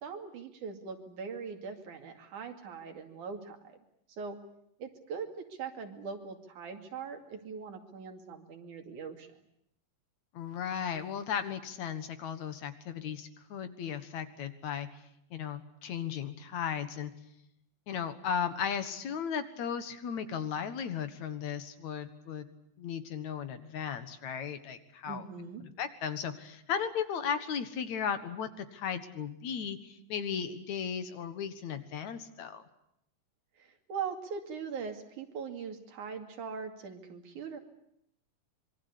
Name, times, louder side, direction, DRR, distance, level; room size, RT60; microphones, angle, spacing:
voice 1, 0.0-3.8 4.1-4.4 4.8-9.3 25.0-25.7 33.6-37.6, right 6 dB, 60° right, 5 dB, 3.8 m, -41 dB
voice 2, 10.3-14.9 15.3-17.1 17.9-25.2 25.8-32.6, left 7 dB, 60° left, 10 dB, 2.6 m, -36 dB
26.0 x 23.0 x 8.5 m, 0.77 s
omnidirectional pair, 4.0 m